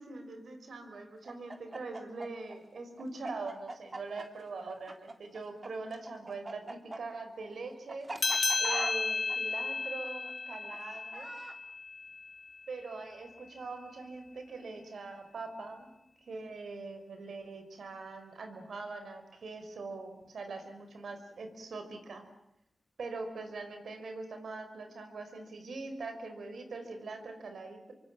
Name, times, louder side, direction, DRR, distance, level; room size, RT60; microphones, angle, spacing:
voice 1, 0.0-11.3 12.7-15.9 16.3-22.2 23.0-27.9, right 3 dB, 80° right, 7 dB, 5.2 m, -43 dB
Chicken rooster, 1.2-5.7 5.9-11.6, right 2 dB, 35° right, 3.3 m, -42 dB
sound 1, 8.2-13.1, left 4 dB, 50° left, 2.0 m, -34 dB
28.0 x 24.5 x 7.6 m, 0.83 s
cardioid pair, 55°, 0 cm